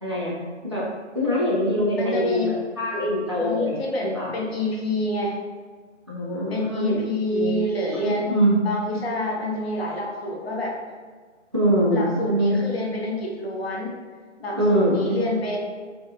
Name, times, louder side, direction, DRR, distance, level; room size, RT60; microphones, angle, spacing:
voice 1, 0.0-0.9 1.1-3.8 4.0-4.3 6.1-7.5 7.9-8.6 11.5-12.6 14.6-15.3, equal, 25° right, -8 dB, 0.4 m, -23 dB
voice 2, 2.0-2.6 3.4-5.4 6.5-8.4 8.6-10.8 11.9-14.0 14.4-15.6, left 1 dB, 55° left, -1 dB, 0.7 m, -27 dB
2.9 x 2.4 x 2.5 m, 1.5 s
figure-of-eight pair, 145°, 37 cm